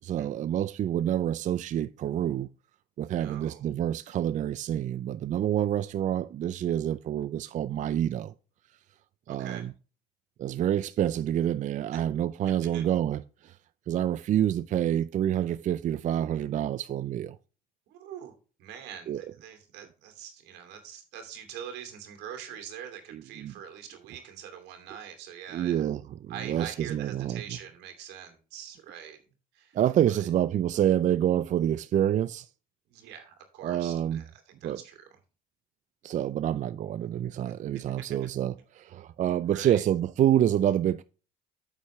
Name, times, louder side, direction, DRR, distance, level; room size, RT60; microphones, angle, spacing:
voice 1, 0.0-2.5 3.0-8.3 9.3-9.7 10.4-13.6 13.9-17.4 19.1-19.2 23.1-23.5 25.5-27.4 29.7-32.5 33.6-34.2 34.6-34.8 36.0-41.0, right 11 dB, 45° right, 0.4 m, -27 dB
voice 2, 3.1-3.6 9.3-9.7 11.9-12.0 12.6-12.8 17.9-25.9 26.3-29.2 29.5-29.8 30.1-30.3 32.9-35.1 37.4-37.5 39.4-39.8, right 9 dB, 90° right, 2.6 m, -44 dB
8.6 x 7.4 x 3.1 m
cardioid pair, 110°, 17 cm